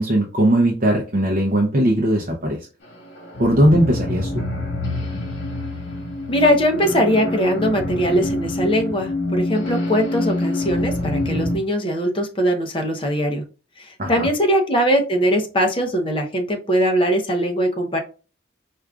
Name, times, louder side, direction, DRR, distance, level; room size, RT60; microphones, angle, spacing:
voice 1, 0.0-2.6 3.4-4.3 14.0-14.3, right 1 dB, 45° right, -2 dB, 0.6 m, -18 dB
sound 1, 2.8-11.6, left 1 dB, 75° left, 1.1 m, -26 dB
voice 2, 6.3-13.4 13.8-18.0, equal, 30° left, 3 dB, 0.6 m, -21 dB
4.6 x 2.4 x 2.3 m, 0.35 s
head